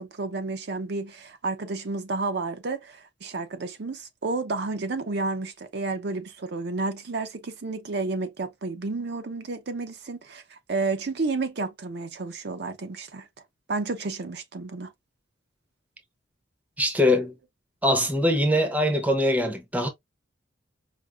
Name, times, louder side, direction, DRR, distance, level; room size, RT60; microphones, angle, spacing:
voice 1, 0.0-13.3 13.7-14.9, right 3 dB, 55° right, 0.6 m, -31 dB
voice 2, 16.8-17.3 17.8-19.9, left 1 dB, 10° right, 0.7 m, -22 dB
4.9 x 2.5 x 2.3 m
head